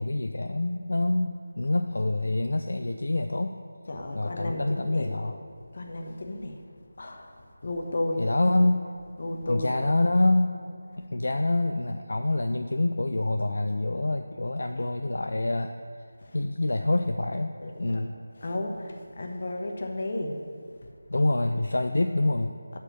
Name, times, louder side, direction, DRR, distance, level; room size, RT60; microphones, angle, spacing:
voice 1, 0.0-3.6 4.1-5.3 8.2-8.8 9.5-10.5 11.0-15.7 16.3-18.2 21.1-22.5, left 2 dB, 65° left, 6 dB, 0.4 m, -26 dB
voice 2, 3.9-5.1 5.7-6.6 7.0-8.2 9.2-10.0 14.8-14.9 16.2-16.4 17.6-18.0 18.4-20.4 20.7-20.9 22.7-22.8, left 1 dB, 45° left, 3 dB, 1.1 m, -33 dB
12.0 x 4.4 x 6.5 m, 2.2 s
figure-of-eight pair, 165°, 0 cm